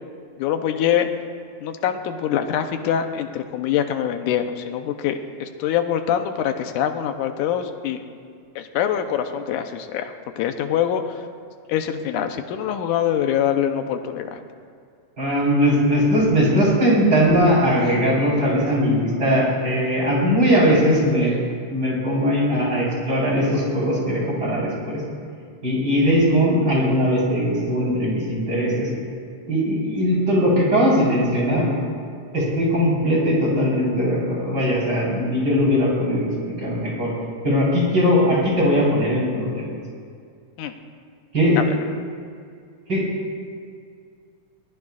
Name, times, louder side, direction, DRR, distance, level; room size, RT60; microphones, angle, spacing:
voice 1, 0.4-1.1 1.6-8.0 8.6-11.2 11.7-14.4 40.6-40.7 41.6-41.7, left 9 dB, 85° left, 7 dB, 2.3 m, -24 dB
voice 2, 15.2-21.4 21.7-25.0 25.6-28.9 29.5-31.7 32.3-36.3 36.6-37.1 37.4-39.7 41.3-41.6 42.9-43.0, equal, 35° right, -5 dB, 4.9 m, -20 dB
22.5 x 18.0 x 2.5 m, 2.2 s
omnidirectional pair, 3.5 m